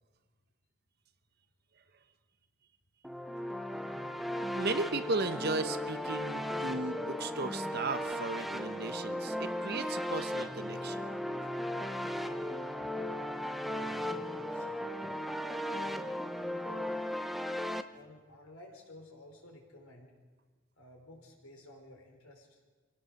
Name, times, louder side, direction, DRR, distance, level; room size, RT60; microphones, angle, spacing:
sound 1, 3.0-17.8, left 1 dB, ahead, 0.7 m, -36 dB
voice 1, 4.5-11.0, right 3 dB, 50° right, 10 dB, 1.0 m, -36 dB
voice 2, 13.6-15.1 15.6-17.0 17.9-20.1 20.8-22.6, left 1 dB, 90° left, 2 dB, 4.8 m, -54 dB
25.0 x 17.0 x 6.5 m, 1.4 s
head